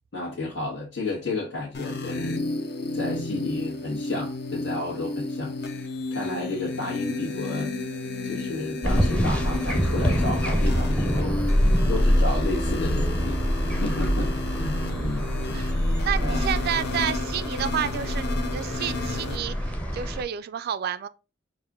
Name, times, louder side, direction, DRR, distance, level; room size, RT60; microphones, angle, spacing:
voice 1, 0.1-2.4 2.9-5.5 6.1-7.7 8.2-11.4 11.9-15.3 16.2-16.4, left 2 dB, 85° left, 1.4 m, -32 dB
sound 1, 1.7-19.4, left 3 dB, 60° left, 0.8 m, -32 dB
sound 2, 8.8-20.2, equal, 5° left, 0.6 m, -25 dB
voice 2, 16.0-21.1, right 9 dB, 55° right, 0.3 m, -30 dB
5.4 x 2.5 x 3.6 m
head